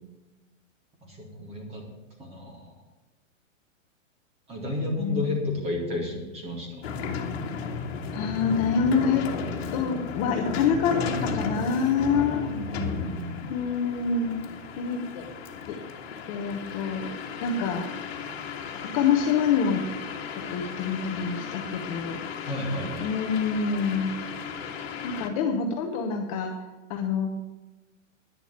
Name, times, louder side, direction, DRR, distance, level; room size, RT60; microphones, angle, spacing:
voice 1, 1.0-1.8 2.2-2.7 4.5-7.0 12.2-13.5 22.5-23.1, left 2 dB, 15° right, 1 dB, 2.3 m, -32 dB
sound 1, 6.8-25.3, left 5 dB, 50° left, 1.7 m, -35 dB
voice 2, 8.1-9.2 9.7-12.5 13.5-14.3 14.8-15.0 15.7-15.8 16.3-17.1 17.4-17.8 18.9-19.8 20.5-22.5 23.0-24.1 25.0-26.5 26.9-27.3, left 6 dB, 25° left, 2 dB, 0.9 m, -26 dB
10.5 x 6.9 x 8.5 m, 1.1 s
hypercardioid pair, 165°, 39 cm